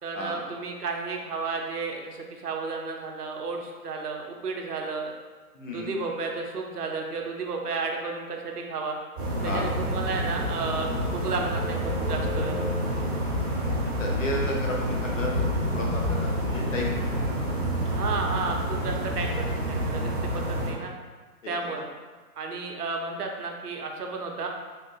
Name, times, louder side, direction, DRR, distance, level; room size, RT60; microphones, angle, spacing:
voice 1, 0.0-5.1 5.7-9.0 9.4-12.6 17.9-20.9 21.5-21.9 22.4-24.5, right 4 dB, 75° right, 2 dB, 0.6 m, -32 dB
voice 2, 5.5-5.9 9.4-9.7 14.0-15.5 15.7-17.5 20.0-20.2 21.4-21.7, left 1 dB, 55° left, -2 dB, 0.7 m, -33 dB
sound 1, 9.2-20.7, equal, 40° right, 1.1 m, -28 dB
3.4 x 2.5 x 2.3 m, 1.4 s
figure-of-eight pair, 145°, 46 cm